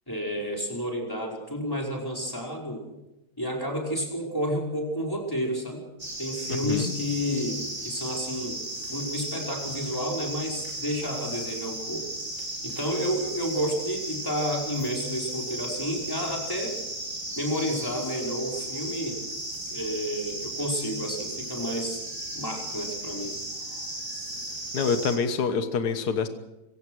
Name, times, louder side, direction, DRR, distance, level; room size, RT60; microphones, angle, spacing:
voice 1, 0.1-2.9 3.4-5.8 6.2-8.6 8.9-12.1 12.6-16.8 17.3-19.2 19.7-22.0 22.3-23.4, equal, 10° left, -1 dB, 5.1 m, -30 dB
sound 1, 6.0-25.2, right 1 dB, 15° right, 4.8 m, -35 dB
voice 2, 24.7-26.3, left 5 dB, 65° left, 8 dB, 1.8 m, -26 dB
25.0 x 16.5 x 6.3 m, 0.96 s
omnidirectional pair, 1.9 m